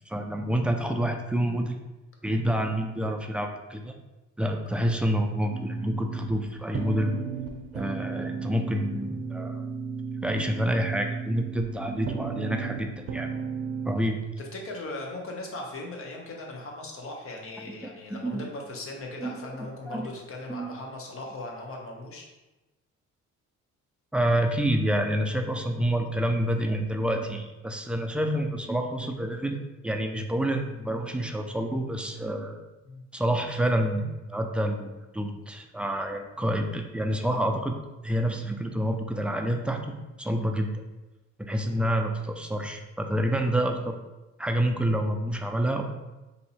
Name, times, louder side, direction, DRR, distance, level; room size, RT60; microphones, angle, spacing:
voice 1, 0.1-1.8 2.2-3.9 4.4-7.2 7.7-9.7 10.2-13.3 13.9-14.2 18.1-18.4 19.2-19.4 19.9-20.1 20.5-20.8 24.1-32.6 33.1-39.8 40.2-40.8 41.4-44.0 44.4-45.9, equal, 5° right, 3 dB, 0.3 m, -28 dB
sound 1, 5.5-14.0, right 5 dB, 50° right, 0.6 m, -34 dB
voice 2, 14.4-22.3 32.9-33.0 36.4-36.6 41.6-41.8, left 2 dB, 45° left, 0 dB, 0.9 m, -39 dB
2.8 x 2.6 x 4.1 m, 1.1 s
cardioid pair, 90°, 30 cm